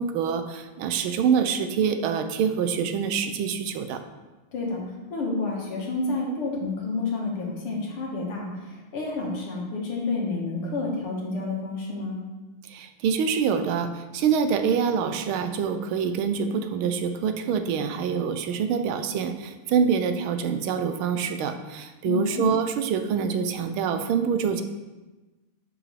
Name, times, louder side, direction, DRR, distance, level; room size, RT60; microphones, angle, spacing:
voice 1, 0.0-4.0 12.6-24.6, right 6 dB, 75° right, 8 dB, 1.4 m, -25 dB
voice 2, 4.5-12.2 22.0-22.4, left 3 dB, 90° left, -2 dB, 2.5 m, -29 dB
11.0 x 5.2 x 3.3 m, 1.2 s
omnidirectional pair, 2.4 m